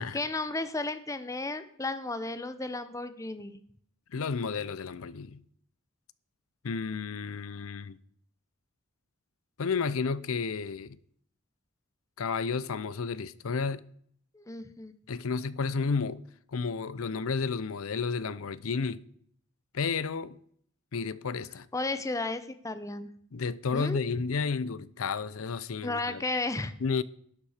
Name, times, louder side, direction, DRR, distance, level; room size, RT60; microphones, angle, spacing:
voice 1, 0.1-3.6 14.3-14.9 21.7-23.1 23.7-24.0 25.8-26.7, left 2 dB, 15° left, 0.6 m, -33 dB
voice 2, 4.1-5.4 6.6-8.0 9.6-11.0 12.2-13.8 15.1-16.2 16.5-19.0 19.7-20.4 20.9-21.7 23.3-26.2 26.8-27.0, left 5 dB, 70° left, 0.6 m, -32 dB
12.0 x 8.4 x 5.0 m
head